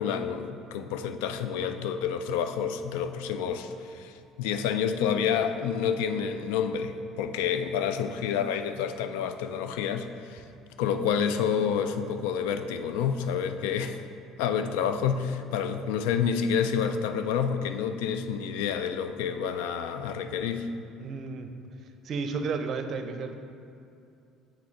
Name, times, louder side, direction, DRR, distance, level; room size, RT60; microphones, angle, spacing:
voice 1, 0.0-10.4 10.8-14.0 14.4-20.7, left 7 dB, 85° left, 9 dB, 0.3 m, -29 dB
voice 2, 21.0-21.5 22.0-23.3, right 4 dB, 55° right, 7 dB, 0.5 m, -32 dB
6.2 x 4.0 x 4.5 m, 2.6 s
supercardioid pair, 80°, 0 cm